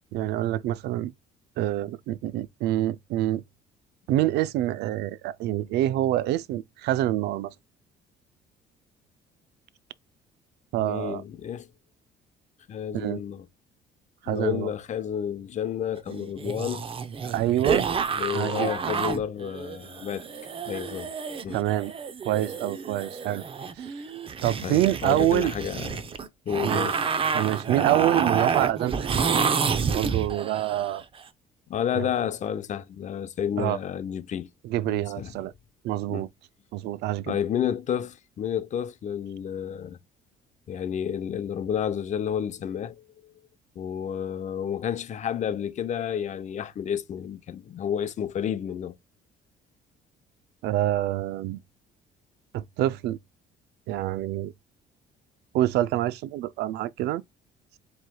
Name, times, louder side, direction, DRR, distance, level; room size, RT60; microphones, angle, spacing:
voice 1, 0.1-1.1 1.6-3.4 4.1-7.5 10.7-11.2 12.9-13.2 14.2-14.7 17.2-17.9 18.3-18.7 21.5-21.9 22.2-23.4 23.8-23.9 24.4-25.5 26.6-26.9 27.3-29.5 29.9-31.0 31.9-32.1 33.6-33.8 34.6-35.5 35.8-36.3 36.7-37.4 50.6-51.6 52.5-53.2 53.9-54.5 55.5-57.2, right 14 dB, 75° right, 0.4 m, -26 dB
voice 2, 10.8-11.7 12.7-13.5 14.3-16.8 18.1-20.2 20.7-21.1 21.4-21.6 24.6-26.0 26.5-27.1 31.7-34.5 34.8-35.3 36.1-36.3 37.3-40.0 40.7-43.0 43.8-49.0, left 9 dB, 45° left, 0.7 m, -30 dB
sound 1, 16.1-31.0, right 6 dB, 35° right, 0.7 m, -29 dB
7.3 x 3.2 x 2.2 m
cardioid pair, 110°, 17 cm